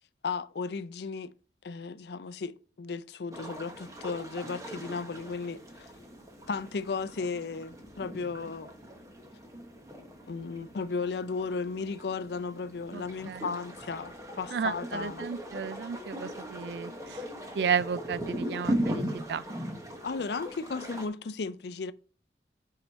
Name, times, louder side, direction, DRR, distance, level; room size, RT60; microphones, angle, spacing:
voice 1, 0.2-1.3 1.6-5.9 6.5-8.7 10.3-15.3 20.0-21.9, left 4 dB, 70° left, 0.5 m, -35 dB
sound 1, 3.3-21.1, equal, 20° right, 1.0 m, -39 dB
voice 2, 12.9-13.4 14.5-17.2 17.6-19.4, right 6 dB, 75° right, 0.3 m, -33 dB
8.2 x 4.8 x 4.0 m
head